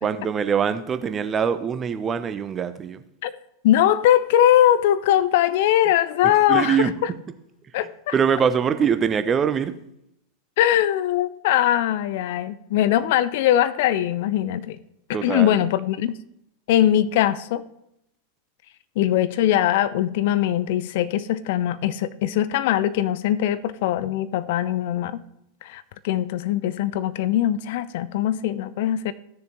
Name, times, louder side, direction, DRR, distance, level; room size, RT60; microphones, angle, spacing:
voice 1, 0.0-3.0 6.2-6.9 8.1-9.8 15.1-15.6, right 7 dB, 25° right, 11 dB, 0.7 m, -23 dB
voice 2, 3.6-7.1 7.7-8.1 10.6-14.8 15.2-16.1 16.7-17.7 19.0-25.2 25.6-29.1, left 12 dB, 55° left, 15 dB, 0.5 m, -21 dB
16.0 x 6.7 x 3.0 m, 0.78 s
figure-of-eight pair, 90°, 0 cm